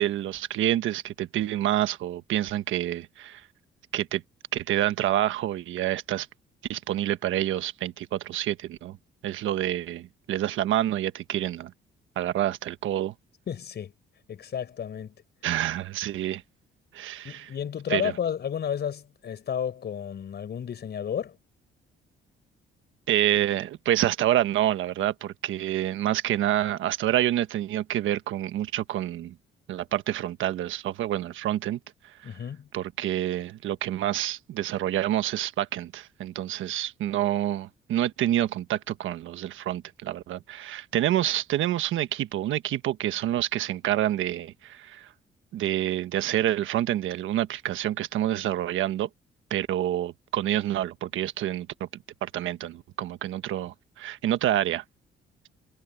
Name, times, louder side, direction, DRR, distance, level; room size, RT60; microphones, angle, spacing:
voice 1, 0.0-3.4 3.9-4.2 4.5-6.3 6.7-9.0 9.2-11.7 12.2-13.1 15.4-16.4 16.9-17.5 17.9-18.1 23.1-29.4 29.7-31.8 32.7-45.1 45.5-49.1 49.5-51.9 52.2-54.8, right 12 dB, 80° right, 1.3 m, -27 dB
voice 2, 13.5-13.9 14.3-15.1 17.2-21.4 32.2-32.7, left 8 dB, 55° left, 5.2 m, -32 dB
cardioid pair, 90°, 20 cm